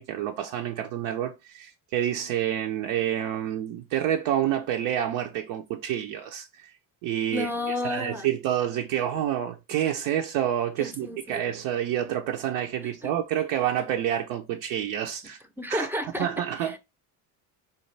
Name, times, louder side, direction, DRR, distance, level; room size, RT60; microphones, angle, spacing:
voice 1, 0.0-6.7 7.0-7.5 7.8-15.4 15.7-15.9 16.2-16.8, right 11 dB, 80° right, 0.6 m, -28 dB
voice 2, 7.3-8.3 10.8-11.5 12.8-13.1 15.6-16.8, left 1 dB, 5° right, 0.4 m, -32 dB
4.3 x 2.3 x 3.2 m
supercardioid pair, 85°, 45 cm